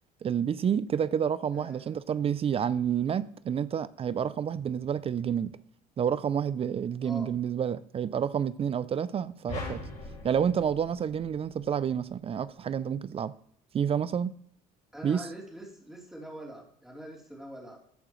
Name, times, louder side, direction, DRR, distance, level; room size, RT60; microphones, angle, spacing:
voice 1, 0.2-5.5 6.0-9.8 10.2-13.3 13.7-14.3 15.0-15.2, right 8 dB, 35° right, 0.5 m, -29 dB
voice 2, 1.5-2.0 7.0-7.3 14.9-17.8, right 1 dB, 5° right, 3.5 m, -44 dB
sound 1, 9.5-11.9, left 3 dB, 45° left, 2.6 m, -41 dB
13.5 x 7.4 x 3.2 m
cardioid pair, 95°, 16 cm